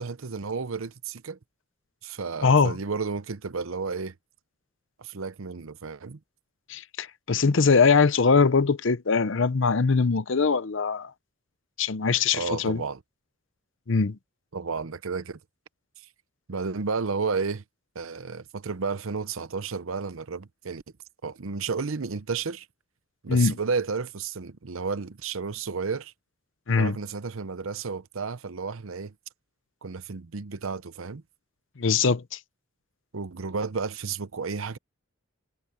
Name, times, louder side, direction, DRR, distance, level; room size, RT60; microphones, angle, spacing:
voice 1, 0.0-1.4 2.0-4.1 5.0-6.2 12.3-13.0 14.5-15.4 16.0-16.1 16.5-17.6 17.9-20.8 21.2-22.7 23.2-26.1 26.8-29.1 29.8-31.2 33.1-34.8, right 5 dB, 70° right, 0.7 m, -32 dB
voice 2, 2.4-2.7 6.7-11.1 11.8-12.8 13.9-14.2 23.3-23.5 26.7-27.0 31.8-32.4, left 5 dB, 60° left, 0.7 m, -22 dB
head